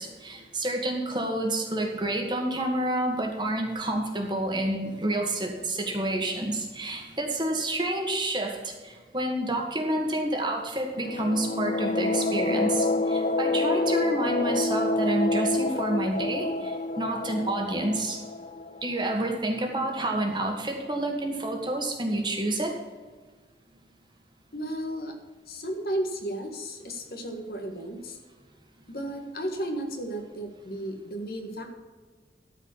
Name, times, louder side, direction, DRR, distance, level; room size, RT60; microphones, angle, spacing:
voice 1, 0.0-18.2 18.8-22.7, right 1 dB, 25° right, 1 dB, 1.7 m, -29 dB
sound 1, 10.9-19.5, left 2 dB, 40° left, 0.5 m, -28 dB
voice 2, 24.5-25.1 25.5-28.2 28.9-31.7, right 1 dB, 55° left, 3 dB, 1.7 m, -34 dB
13.0 x 5.0 x 7.2 m, 1.4 s
head